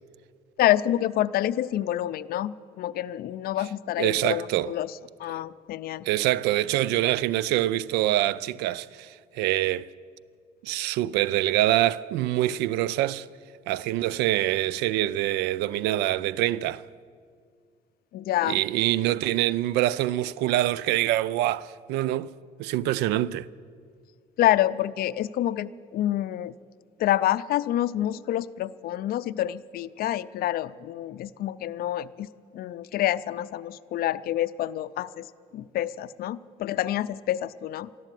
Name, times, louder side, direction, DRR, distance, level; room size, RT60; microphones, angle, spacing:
voice 1, 0.6-6.1 18.1-18.6 24.4-26.5 27.0-32.3 32.5-35.3 35.5-37.9, left 13 dB, 65° left, 0.5 m, -27 dB
voice 2, 4.0-4.7 6.1-9.9 10.6-13.3 13.7-16.8 18.5-22.3 22.6-23.5, right 14 dB, 90° right, 0.4 m, -25 dB
13.5 x 12.0 x 9.1 m
cardioid pair, 110°, 17 cm